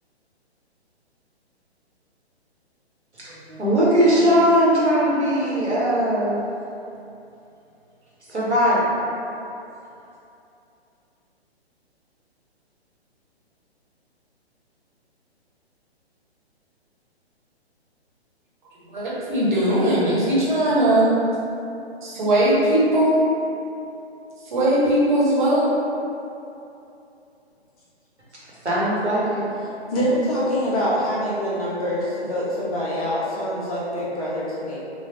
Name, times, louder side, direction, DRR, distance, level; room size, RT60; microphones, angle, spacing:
voice 1, 3.2-6.4 8.3-9.0 28.6-29.5, equal, 85° right, -8 dB, 1.2 m, -20 dB
voice 2, 18.9-21.1 22.0-23.2 24.5-25.7, right 1 dB, 45° right, -8 dB, 1.1 m, -19 dB
voice 3, 29.9-34.8, equal, 35° left, -8 dB, 0.7 m, -25 dB
3.8 x 2.3 x 2.9 m, 2.8 s
figure-of-eight pair, 130°, 33 cm